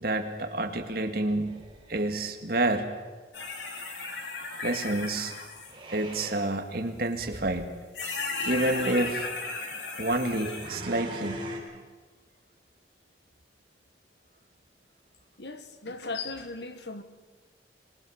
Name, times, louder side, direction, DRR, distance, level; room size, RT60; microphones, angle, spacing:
voice 1, 0.0-1.6 1.9-3.0 4.6-5.3 5.9-7.7 8.4-9.3 10.0-11.4, right 2 dB, 60° right, 2.1 m, -28 dB
sound 1, 1.5-2.3 5.7-6.5 7.2-7.6 8.2-8.9 10.5-11.6, equal, 30° right, 4.3 m, -41 dB
sound 2, 3.3-5.7 7.1-7.2 7.9-10.7, left 3 dB, 90° left, 3.3 m, -35 dB
voice 2, 15.4-17.0, left 3 dB, 75° left, 1.6 m, -38 dB
25.5 x 21.0 x 6.5 m
head